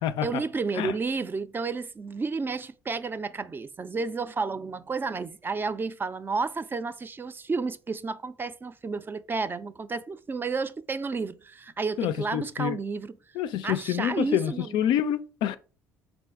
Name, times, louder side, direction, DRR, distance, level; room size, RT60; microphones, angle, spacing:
voice 1, 0.2-13.2 13.6-14.8, right 4 dB, 25° right, 0.3 m, -31 dB
voice 2, 12.0-12.8 13.4-15.6, left 10 dB, 65° left, 0.4 m, -27 dB
3.7 x 2.6 x 3.5 m
hypercardioid pair, 65°, 8 cm